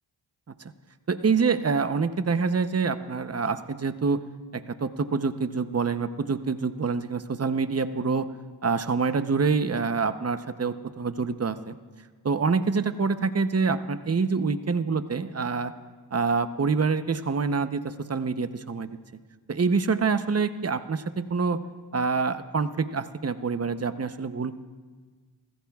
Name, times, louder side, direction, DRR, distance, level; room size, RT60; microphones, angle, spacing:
voice 1, 1.1-4.2 4.5-8.3 8.6-11.7 12.2-15.7 16.1-18.9 19.5-21.6 21.9-24.6, right 5 dB, 35° right, 11 dB, 0.8 m, -26 dB
29.0 x 14.5 x 2.4 m, 1.5 s
cardioid pair, 45°, 46 cm